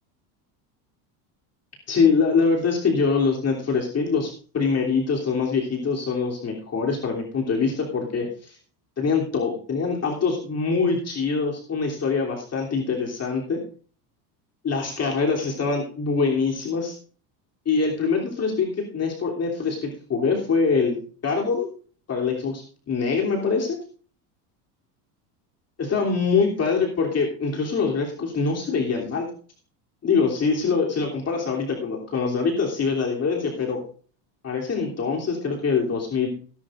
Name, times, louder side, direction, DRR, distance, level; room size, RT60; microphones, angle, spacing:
voice 1, 1.9-8.6 9.0-13.6 14.6-16.9 17.6-21.0 21.2-21.7 22.1-23.8 25.8-29.3 30.0-33.8 34.4-36.3, left 5 dB, 30° left, -1 dB, 3.1 m, -24 dB
18.0 x 11.0 x 2.5 m, 0.42 s
supercardioid pair, 110°, 47 cm